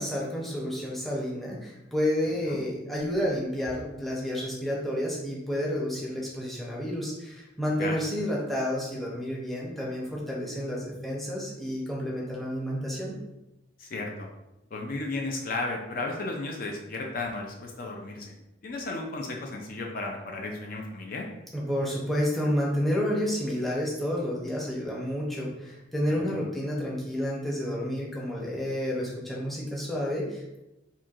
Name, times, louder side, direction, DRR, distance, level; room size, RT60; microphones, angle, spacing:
voice 1, 0.0-13.2 21.5-30.6, equal, ahead, -5 dB, 0.7 m, -30 dB
voice 2, 13.8-14.3 14.7-18.3 18.6-21.3 26.2-26.4, left 2 dB, 50° left, 1 dB, 0.4 m, -34 dB
4.3 x 2.6 x 2.5 m, 0.93 s
head